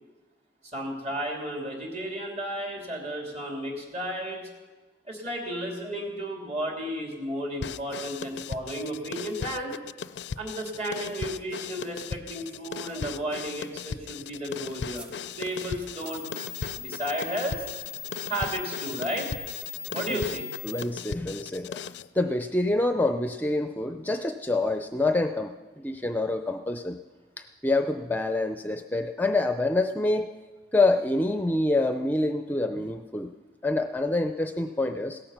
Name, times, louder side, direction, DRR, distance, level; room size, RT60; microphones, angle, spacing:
voice 1, 0.7-4.5 5.1-9.8 10.4-16.3 16.7-17.7 18.3-19.3 19.9-20.5, right 1 dB, 40° right, 1 dB, 3.2 m, -33 dB
sound 1, 7.6-22.1, left 6 dB, 75° left, 0.4 m, -38 dB
sound 2, 14.5-20.8, left 7 dB, 5° right, 1.1 m, -40 dB
voice 2, 20.6-21.8 22.1-27.0 27.4-30.4 30.7-33.3 33.6-35.3, left 2 dB, 10° left, 7 dB, 0.5 m, -26 dB
17.0 x 14.0 x 5.8 m, 1.3 s
head